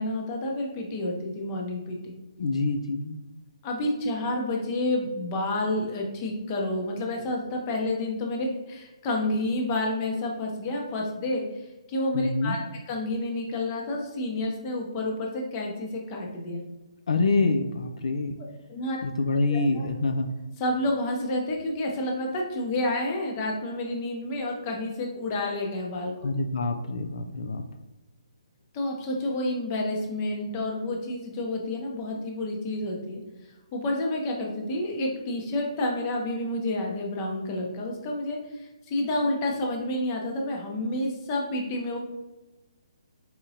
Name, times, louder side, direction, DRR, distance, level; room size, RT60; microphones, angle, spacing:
voice 1, 0.0-2.1 3.6-11.6 11.9-12.6 12.9-16.6 18.7-19.0 19.5-19.8 20.6-26.3 28.7-33.2 33.7-42.0, left 1 dB, 25° left, 0 dB, 0.7 m, -29 dB
voice 2, 2.4-3.2 12.1-12.6 17.1-18.4 19.0-20.3 26.2-27.6, left 3 dB, 70° left, 6 dB, 0.4 m, -26 dB
4.2 x 3.6 x 2.8 m, 1.1 s
hypercardioid pair, 160°, 3 cm